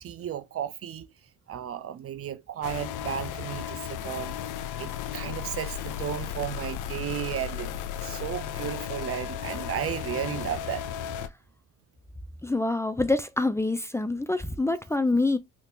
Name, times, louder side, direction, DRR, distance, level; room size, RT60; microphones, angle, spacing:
voice 1, 0.0-1.1 1.5-4.4 4.8-7.7 8.0-10.8, right 10 dB, 50° right, 0.5 m, -34 dB
sound 1, 2.6-11.3, left 9 dB, 85° left, 0.5 m, -35 dB
voice 2, 12.4-15.4, left 2 dB, 10° left, 0.4 m, -26 dB
3.6 x 2.4 x 2.8 m
cardioid pair, 90°, 30 cm